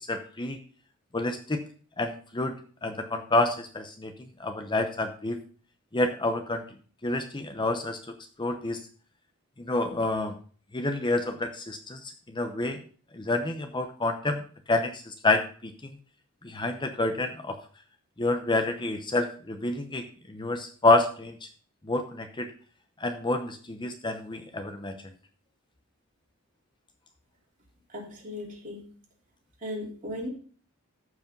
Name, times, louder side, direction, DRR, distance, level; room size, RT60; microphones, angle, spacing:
voice 1, 0.1-0.6 1.1-1.6 2.0-2.5 2.8-4.1 4.4-5.4 5.9-6.6 7.0-8.0 8.4-8.8 9.6-10.4 10.7-12.8 13.1-14.4 14.7-16.0 16.4-17.5 18.2-21.4 21.8-22.5 23.0-24.9, left 2 dB, 20° left, 7 dB, 0.8 m, -28 dB
voice 2, 27.9-28.8 29.6-30.3, left 1 dB, 40° right, -1 dB, 3.4 m, -36 dB
14.0 x 5.0 x 5.3 m, 0.43 s
head